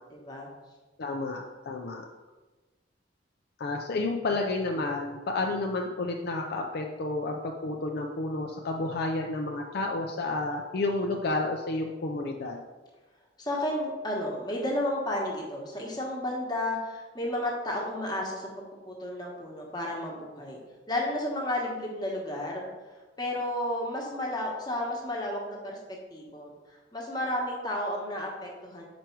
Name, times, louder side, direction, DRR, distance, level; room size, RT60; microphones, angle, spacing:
voice 1, 0.1-0.5 13.4-20.6 20.9-22.7 23.2-26.5 26.9-28.8, left 1 dB, 20° left, -2 dB, 1.2 m, -32 dB
voice 2, 1.0-2.1 3.6-12.6, left 2 dB, 55° left, 1 dB, 0.5 m, -31 dB
5.1 x 4.6 x 4.5 m, 1.2 s
head